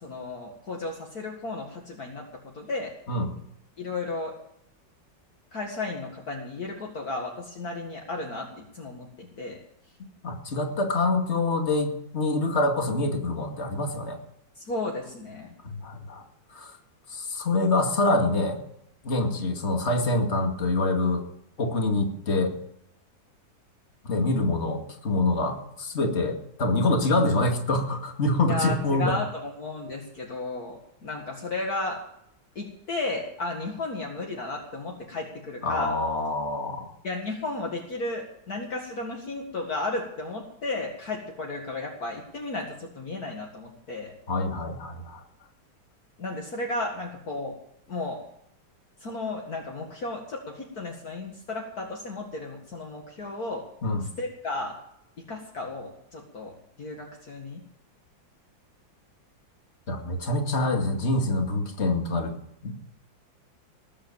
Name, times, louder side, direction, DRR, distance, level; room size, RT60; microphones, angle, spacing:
voice 1, 0.0-2.9 3.8-4.3 5.5-9.6 14.6-15.5 28.5-32.0 32.6-36.0 37.0-44.1 46.2-47.6 47.9-48.2 49.0-53.6 54.2-54.8 55.3-56.5 56.8-57.6, left 2 dB, 50° left, -1 dB, 2.5 m, -34 dB
voice 2, 10.2-14.2 15.6-16.2 16.5-16.7 17.1-18.6 19.0-21.2 21.6-22.6 24.0-29.2 35.6-36.9 44.3-45.2 53.8-54.0 59.9-62.3 62.6-62.8, left 2 dB, 35° left, 3 dB, 2.4 m, -25 dB
20.0 x 8.6 x 7.3 m, 0.74 s
omnidirectional pair, 2.0 m